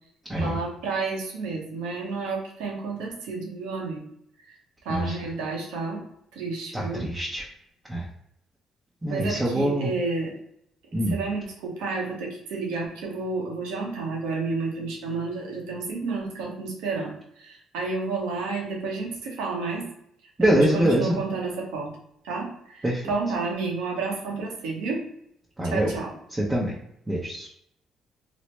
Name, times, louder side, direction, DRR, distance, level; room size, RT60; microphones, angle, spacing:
voice 1, 0.4-4.0 4.5-4.6 4.8-6.0 6.3-7.1 9.1-10.3 11.1-19.9 20.4-21.9 22.2-25.0 25.6-26.1, right 3 dB, 85° right, 0 dB, 0.8 m, -31 dB
voice 2, 6.7-7.4 7.9-8.1 9.0-9.9 10.9-11.2 20.4-21.2 22.8-23.0 25.6-25.9 26.3-26.8 27.1-27.5, right 1 dB, 20° right, -4 dB, 0.7 m, -24 dB
3.1 x 2.0 x 3.1 m, 0.74 s
supercardioid pair, 70°, 0 cm